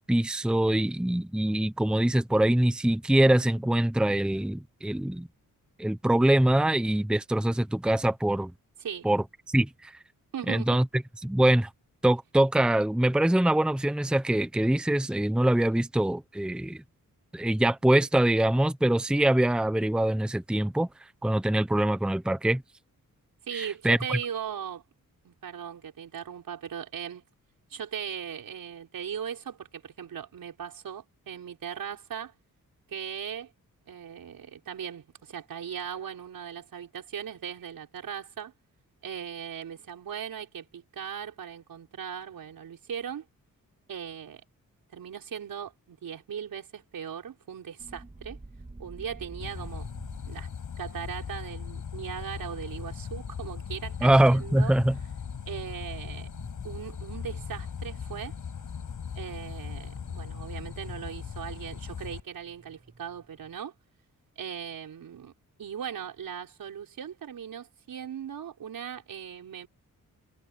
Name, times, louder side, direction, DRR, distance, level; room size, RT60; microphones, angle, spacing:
voice 1, 0.0-5.3 5.8-8.5 9.0-9.9 10.5-10.8 11.2-11.7 12.0-16.8 17.3-20.9 21.2-22.6 23.5-24.2 54.0-54.9, right 1 dB, 5° right, 0.8 m, -24 dB
voice 2, 10.3-10.8 23.5-24.8 25.2-27.2 27.7-32.3 32.9-33.5 33.9-38.5 39.0-43.3 43.9-44.4 44.9-48.4 48.8-49.9 50.3-50.5 50.8-54.7 55.5-56.3 56.6-58.4 59.2-63.7 64.4-65.3 65.6-69.7, right 8 dB, 80° right, 5.1 m, -38 dB
sound 1, 47.8-63.6, right 2 dB, 20° right, 2.4 m, -51 dB
sound 2, 49.4-62.2, left 7 dB, 65° left, 6.8 m, -39 dB
cardioid pair, 95°, 34 cm